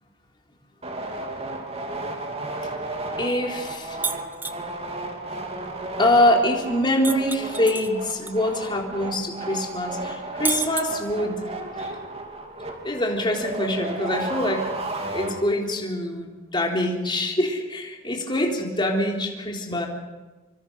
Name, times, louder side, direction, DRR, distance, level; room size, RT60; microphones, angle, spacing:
sound 1, 0.8-15.8, right 2 dB, 30° right, 3.0 m, -34 dB
voice 1, 3.2-4.0 6.0-11.5 11.8-11.9 12.8-14.7 15.1-19.9, left 1 dB, 20° left, 1 dB, 3.7 m, -24 dB
sound 2, 4.0-4.6 7.0-8.3 8.7-8.8 10.5-11.4, right 4 dB, 10° right, 1.0 m, -29 dB
26.0 x 25.0 x 6.4 m, 1.2 s
head